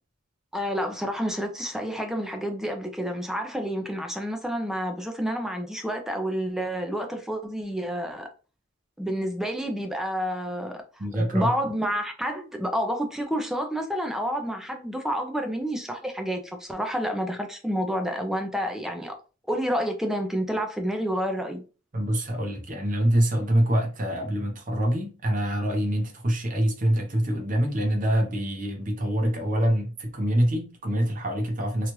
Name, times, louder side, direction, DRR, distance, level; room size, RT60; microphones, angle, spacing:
voice 1, 0.5-8.3 9.0-19.2 19.5-21.6, equal, ahead, 0.4 m, -29 dB
voice 2, 11.0-11.5 21.9-31.9, right 1 dB, 40° right, 0.7 m, -25 dB
2.9 x 2.4 x 2.9 m
head